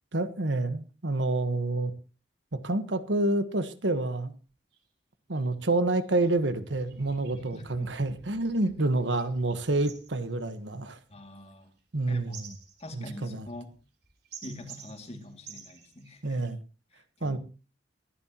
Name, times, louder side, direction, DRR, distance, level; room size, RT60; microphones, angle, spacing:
voice 1, 0.1-1.9 2.5-4.3 5.3-11.0 11.9-12.5 12.9-13.5 16.2-16.6 17.2-17.4, right 2 dB, 80° right, 1.3 m, -28 dB
sound 1, 4.4-4.5 4.7-4.9 5.3-5.5 5.9-16.5, right 7 dB, 60° right, 3.8 m, -52 dB
voice 2, 7.3-7.9 11.1-11.7 12.1-12.4 12.8-13.8 14.4-16.4 16.9-17.4, left 1 dB, 35° left, 2.3 m, -44 dB
23.0 x 11.5 x 3.0 m
head